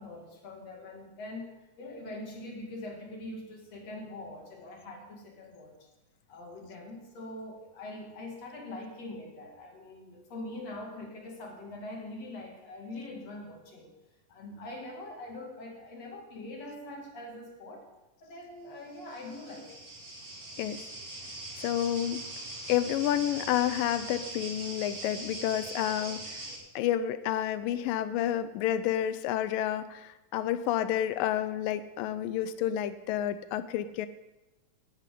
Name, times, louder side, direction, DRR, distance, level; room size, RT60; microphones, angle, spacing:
voice 1, 0.0-5.9 6.3-14.0 14.3-17.9 18.2-19.9, left 2 dB, 50° left, 0 dB, 3.1 m, -43 dB
sound 1, 18.9-26.6, right 2 dB, 35° right, 2.9 m, -41 dB
voice 2, 21.6-22.2 22.7-26.4 26.8-34.1, left 11 dB, 85° left, 12 dB, 2.3 m, -30 dB
16.5 x 11.5 x 3.7 m, 1.0 s
omnidirectional pair, 3.9 m